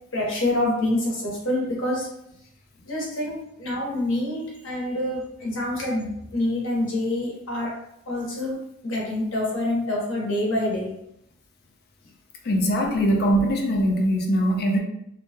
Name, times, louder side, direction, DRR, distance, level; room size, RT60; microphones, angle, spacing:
voice 1, 0.1-2.1 2.8-7.7 8.1-10.9, left 1 dB, 70° left, -4 dB, 1.0 m, -26 dB
voice 2, 12.4-14.8, equal, 55° left, 2 dB, 0.5 m, -21 dB
2.9 x 2.2 x 2.8 m, 0.77 s
head